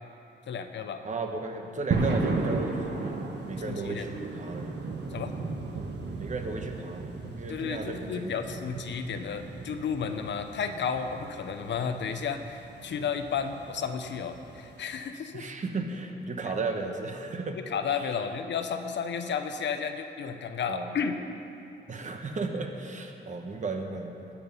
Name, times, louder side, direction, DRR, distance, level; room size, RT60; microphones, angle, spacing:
voice 1, 0.5-1.0 3.6-4.1 5.1-5.3 7.5-15.5 17.6-21.2, left 6 dB, 70° left, 7 dB, 0.8 m, -32 dB
voice 2, 1.0-4.7 6.2-8.7 15.3-17.6 20.7-21.0 21.9-24.3, right 3 dB, 40° right, 4 dB, 1.1 m, -35 dB
sound 1, 1.9-14.8, right 3 dB, 65° right, 1.3 m, -35 dB
20.0 x 7.5 x 5.6 m, 2.9 s
wide cardioid pair, 165°, 19 cm